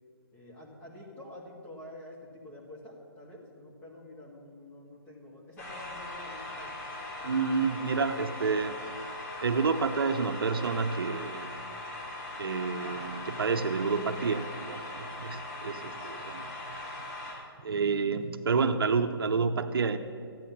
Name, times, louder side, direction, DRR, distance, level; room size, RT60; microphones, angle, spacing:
voice 1, 0.3-6.7, left 1 dB, 10° left, -3 dB, 2.1 m, -48 dB
sound 1, 5.6-17.3, left 2 dB, 45° left, 3.4 m, -40 dB
voice 2, 7.2-11.6 12.4-16.5 17.6-20.0, right 5 dB, 65° right, 7 dB, 0.8 m, -29 dB
14.0 x 9.3 x 7.2 m, 2.3 s
hypercardioid pair, 160°, 13 cm